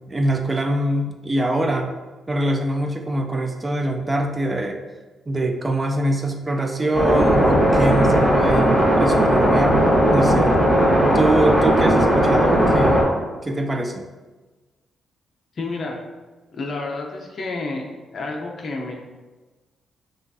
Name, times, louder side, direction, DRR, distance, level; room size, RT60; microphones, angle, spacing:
voice 1, 0.1-1.9 2.3-4.8 5.3-9.8 10.1-10.5 11.0-13.1 13.4-14.1, right 1 dB, 15° right, 4 dB, 0.4 m, -23 dB
sound 1, 6.9-13.0, equal, ahead, 1.2 m, -17 dB
voice 2, 15.6-16.0 16.5-17.8 18.1-19.0, left 3 dB, 45° left, 0 dB, 0.6 m, -29 dB
5.6 x 2.4 x 2.6 m, 1.3 s
cardioid pair, 140°, 0 cm